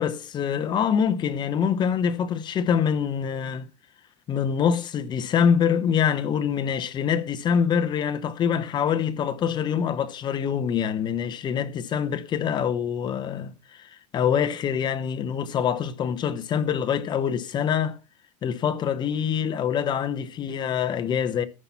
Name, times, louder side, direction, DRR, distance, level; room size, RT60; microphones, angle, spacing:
voice 1, 0.0-3.6 4.3-18.0 18.4-21.4, left 7 dB, 25° left, 0.8 m, -25 dB
14.0 x 5.9 x 5.6 m
supercardioid pair, 160°, 18 cm